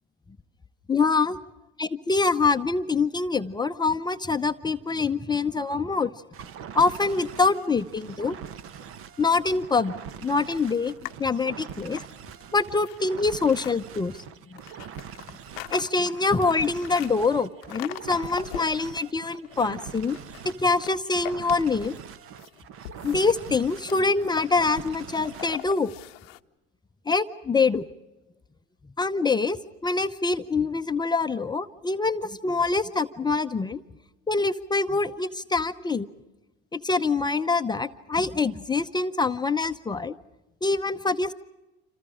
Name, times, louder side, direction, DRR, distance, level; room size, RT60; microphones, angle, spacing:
voice 1, 0.9-1.4 1.8-6.1 6.7-8.4 9.2-9.9 10.2-10.9 11.2-12.0 12.5-14.2 14.5-14.6 15.7-20.2 20.4-21.9 23.0-25.9 27.1-27.8 29.0-33.8 34.3-36.1 36.7-40.2 40.6-41.3, left 4 dB, 15° left, 8 dB, 0.7 m, -25 dB
sound 1, 6.3-25.7, right 8 dB, 45° right, 1.0 m, -43 dB
sound 2, 10.5-11.3 11.7-13.7 14.6-17.1 17.6-19.0 19.4-20.5 20.8-22.1 22.4-26.4, left 20 dB, 80° left, 0.8 m, -41 dB
28.0 x 27.5 x 4.9 m, 1.0 s
supercardioid pair, 110°, 30 cm